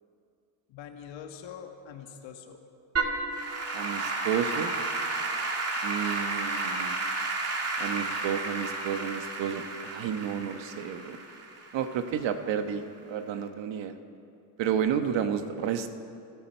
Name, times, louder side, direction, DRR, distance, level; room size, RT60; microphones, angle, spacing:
voice 1, 0.7-2.6 15.0-15.7, left 8 dB, 70° left, 5 dB, 1.7 m, -45 dB
Applause / Keyboard (musical), 3.0-12.3, right 3 dB, 30° right, 2.1 m, -32 dB
voice 2, 3.7-4.7 5.8-7.0 7.8-11.2 11.7-12.8 13.1-13.9 14.6-15.9, right 8 dB, 65° right, 8 dB, 1.2 m, -31 dB
25.5 x 13.0 x 4.4 m, 2.5 s
cardioid pair, 120°, 47 cm